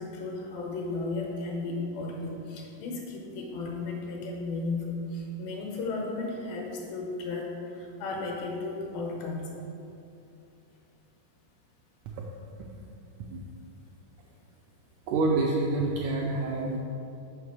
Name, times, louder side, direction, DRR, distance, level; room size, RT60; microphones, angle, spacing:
voice 1, 0.0-9.5, left 3 dB, 90° left, 0 dB, 2.8 m, -34 dB
voice 2, 15.1-16.8, right 3 dB, 85° right, -1 dB, 1.7 m, -27 dB
6.4 x 5.9 x 4.7 m, 2.7 s
omnidirectional pair, 4.1 m